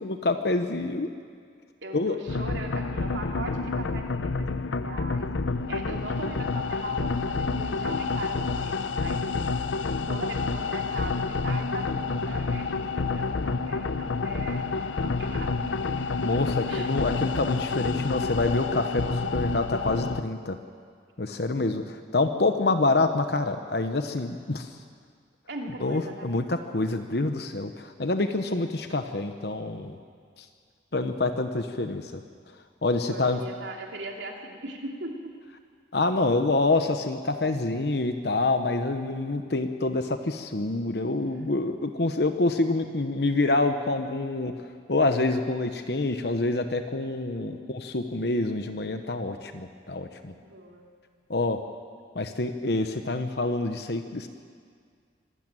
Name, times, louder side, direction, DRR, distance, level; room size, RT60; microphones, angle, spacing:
voice 1, 0.0-1.1 1.9-2.2 16.2-20.6 21.2-24.7 25.8-30.0 30.4-30.5 30.9-32.2 32.8-33.4 35.9-44.5 44.9-50.3 51.3-51.6 52.1-54.3, left 2 dB, 60° left, 7 dB, 0.9 m, -27 dB
voice 2, 1.8-5.3 5.7-9.2 10.1-15.7 16.7-17.1 21.2-21.8 25.5-26.3 33.0-35.3 42.0-42.1 47.3-47.7 50.4-50.8, right 2 dB, 75° right, 1 dB, 2.9 m, -40 dB
sound 1, 2.3-20.2, left 4 dB, 90° left, 0.7 m, -29 dB
24.5 x 12.5 x 9.0 m, 2.1 s
head